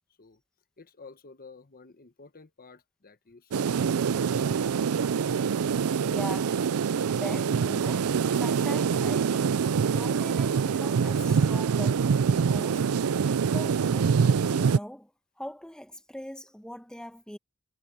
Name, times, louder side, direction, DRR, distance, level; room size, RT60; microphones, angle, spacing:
voice 1, 0.8-5.0, left 4 dB, 40° left, 1.1 m, -52 dB
sound 1, 3.5-14.8, right 6 dB, 75° right, 0.4 m, -25 dB
voice 2, 6.0-6.6 7.1-8.1 8.4-9.6 9.9-12.9 13.2-15.1 15.4-17.4, equal, 5° left, 1.3 m, -41 dB
head